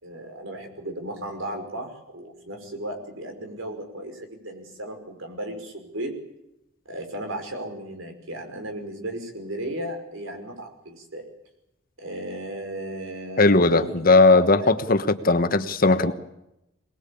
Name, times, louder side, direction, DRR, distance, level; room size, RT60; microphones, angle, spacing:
voice 1, 0.0-6.2 6.9-11.3 12.0-13.9 14.3-14.7 16.1-16.2, right 1 dB, 70° right, 5 dB, 5.5 m, -35 dB
voice 2, 13.4-16.1, left 3 dB, 45° left, 10 dB, 1.3 m, -18 dB
23.0 x 20.0 x 8.7 m, 0.86 s
head